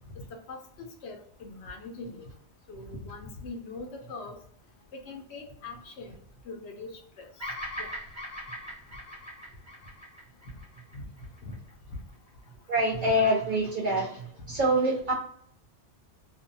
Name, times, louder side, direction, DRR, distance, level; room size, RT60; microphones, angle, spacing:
voice 1, 0.1-2.3 2.7-4.3 4.9-6.2 6.4-6.9 7.2-7.5 7.8-7.9 10.9-11.0 11.4-11.6 14.5-14.6, left 3 dB, 70° left, 3 dB, 0.9 m, -42 dB
Bird vocalization bird call bird song, 7.4-11.7, equal, 15° left, 0.6 m, -40 dB
voice 2, 12.7-15.1, right 1 dB, 60° right, -2 dB, 0.5 m, -25 dB
2.5 x 2.2 x 2.6 m, 0.66 s
omnidirectional pair, 1.2 m